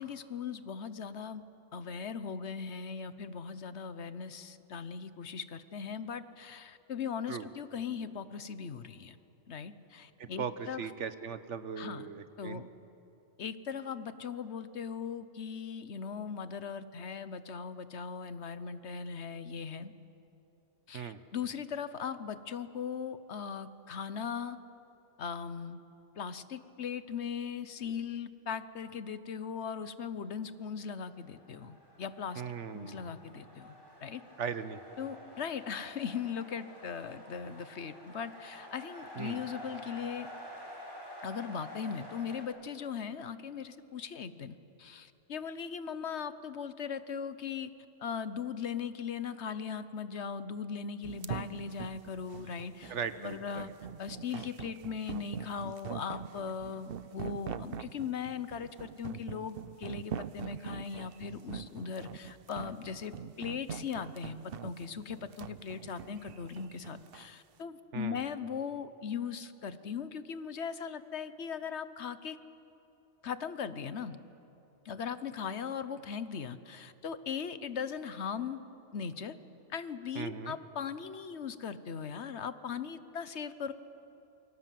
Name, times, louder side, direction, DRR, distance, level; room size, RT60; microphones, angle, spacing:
voice 1, 0.0-1.4 1.7-9.2 9.5-10.8 11.8-12.1 12.4-12.7 13.4-19.9 20.9-24.6 25.2-25.8 26.2-32.4 32.7-33.8 34.0-34.2 35.0-40.3 41.2-47.7 48.0-52.9 53.2-53.7 54.0-72.4 73.2-74.2 74.8-78.6 78.9-79.3 79.7-83.7, left 6 dB, 70° left, 13 dB, 1.3 m, -39 dB
voice 2, 10.2-12.6 20.9-21.2 32.4-33.1 34.4-34.8 39.2-39.4 52.9-53.7 67.9-68.2 80.1-80.5, right 7 dB, 90° right, 12 dB, 1.4 m, -39 dB
sound 1, 31.0-42.5, equal, 20° left, 5.0 m, -49 dB
sound 2, 51.0-67.3, right 8 dB, 60° right, 0.9 m, -43 dB
27.5 x 24.5 x 7.7 m, 3.0 s
omnidirectional pair, 1.2 m